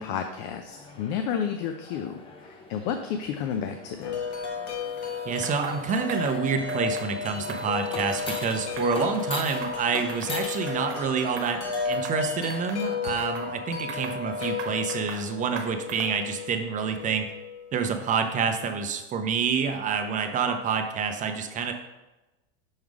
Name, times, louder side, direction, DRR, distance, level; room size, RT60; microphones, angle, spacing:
voice 1, 0.0-4.2, left 8 dB, 55° left, 6 dB, 0.6 m, -31 dB
sound 1, 0.7-11.8, left 3 dB, 15° left, 0.7 m, -42 dB
Wind chime, 4.0-18.0, left 5 dB, 85° left, 1.4 m, -33 dB
voice 2, 5.2-17.3 17.7-21.7, right 6 dB, 25° right, 5 dB, 0.6 m, -28 dB
TAble tennis, 5.4-5.8 6.1-6.4 6.7-7.1 7.4-8.4 8.8-9.1 9.4-10.4 10.7-11.0 11.4-11.6 11.9-12.2 12.5-13.5 13.9-15.3 15.6-16.2, right 7 dB, 80° right, 1.0 m, -41 dB
6.3 x 3.6 x 4.7 m, 1.0 s
supercardioid pair, 130°, 33 cm